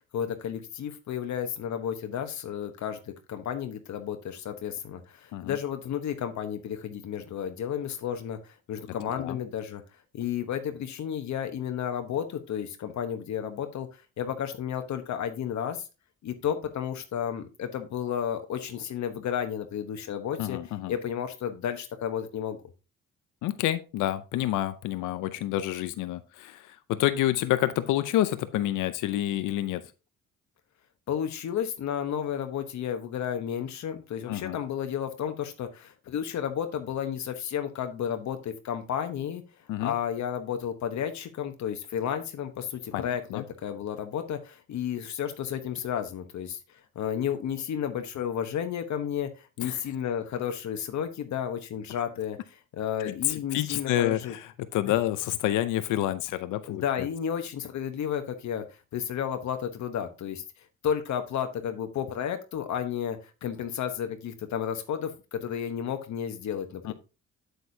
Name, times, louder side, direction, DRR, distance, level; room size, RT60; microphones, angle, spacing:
voice 1, 0.1-3.0 3.3-9.8 10.1-15.9 16.2-20.6 20.9-22.6 31.1-39.4 39.8-54.3 54.8-54.9 56.7-58.6 58.9-60.4 60.8-66.9, left 9 dB, 65° left, 7 dB, 1.0 m, -32 dB
voice 2, 20.4-20.9 23.4-29.8 34.3-34.6 39.7-39.9 42.9-43.4 49.6-49.8 53.0-57.1 66.9-67.0, left 13 dB, 90° left, 12 dB, 0.6 m, -28 dB
8.2 x 8.0 x 2.7 m, 0.31 s
cardioid pair, 90°, 30 cm